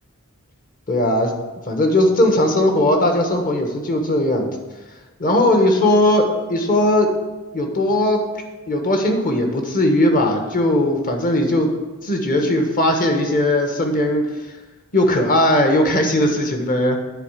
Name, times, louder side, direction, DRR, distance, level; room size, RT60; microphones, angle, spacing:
voice 1, 0.9-1.3 1.7-4.5 5.2-7.1 7.5-8.2 8.7-11.7 12.0-14.2 14.9-17.0, left 1 dB, 40° left, 3 dB, 1.3 m, -18 dB
9.7 x 4.0 x 7.3 m, 1.2 s
head